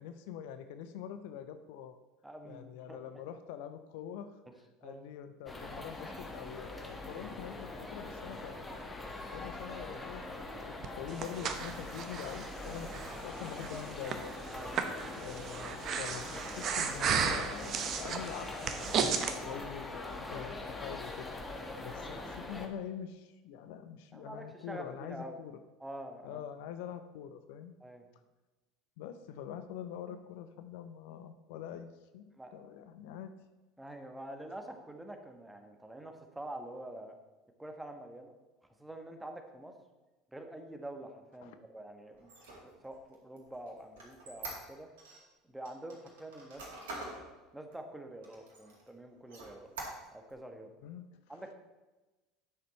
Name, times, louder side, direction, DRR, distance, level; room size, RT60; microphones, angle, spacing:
voice 1, 0.0-2.0 2.4-4.4 4.8-8.6 9.3-14.3 15.1-21.3 21.8-25.5 26.2-27.7 29.0-31.9 32.1-33.3 41.4-41.5 50.8-51.1, left 9 dB, 65° left, 10 dB, 0.6 m, -45 dB
voice 2, 2.2-3.0 4.8-5.0 14.5-15.1 21.7-22.0 24.1-25.4 25.8-26.4 27.8-28.1 32.3-32.5 33.8-37.1 37.6-38.3 38.6-39.7 40.3-44.9 45.4-46.6 47.5-49.7 50.1-50.7 51.3-51.5, right 1 dB, 10° right, 5 dB, 1.3 m, -46 dB
sound 1, 5.5-22.7, left 2 dB, 20° left, 1.3 m, -43 dB
Breathing, 10.8-19.3, right 6 dB, 45° right, 0.9 m, -35 dB
Squeak, 42.2-45.2 45.7-47.2 47.7-47.8 48.2-48.9 49.3-50.3, right 2 dB, 70° right, 2.3 m, -45 dB
9.7 x 6.7 x 4.2 m, 1.1 s
figure-of-eight pair, 70°, 0 cm